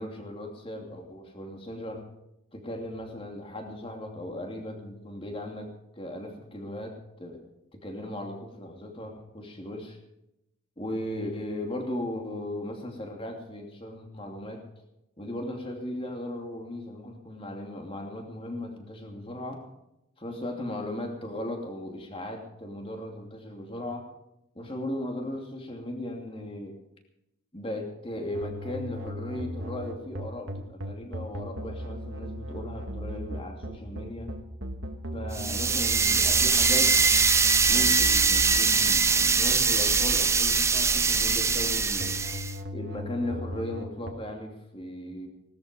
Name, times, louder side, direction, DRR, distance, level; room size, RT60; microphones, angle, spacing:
voice 1, 0.0-2.1 2.5-7.4 7.7-10.0 10.8-14.6 15.2-19.6 20.2-24.1 24.5-26.8 27.5-34.3 35.1-37.0 37.7-42.2 42.7-45.3, left 1 dB, 25° left, 3 dB, 2.7 m, -37 dB
sound 1, 28.3-44.1, equal, 70° right, 1.8 m, -37 dB
sound 2, 35.3-42.5, right 5 dB, 15° right, 0.6 m, -22 dB
18.0 x 13.0 x 5.1 m, 0.85 s
head